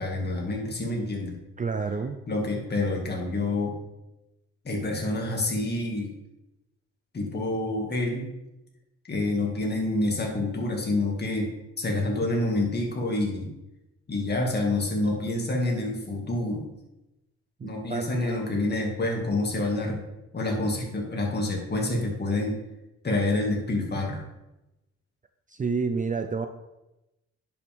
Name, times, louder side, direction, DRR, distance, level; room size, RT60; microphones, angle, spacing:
voice 1, 0.0-1.4 2.3-3.8 4.6-6.1 7.1-8.3 9.1-13.5 14.1-16.7 17.6-20.0 20.3-22.6 23.0-24.2, left 2 dB, 35° left, 0 dB, 2.2 m, -27 dB
voice 2, 1.6-2.2 17.6-18.4 25.5-26.5, right 4 dB, 25° right, 7 dB, 0.5 m, -29 dB
10.0 x 5.8 x 3.6 m, 0.96 s
cardioid pair, 90°, 30 cm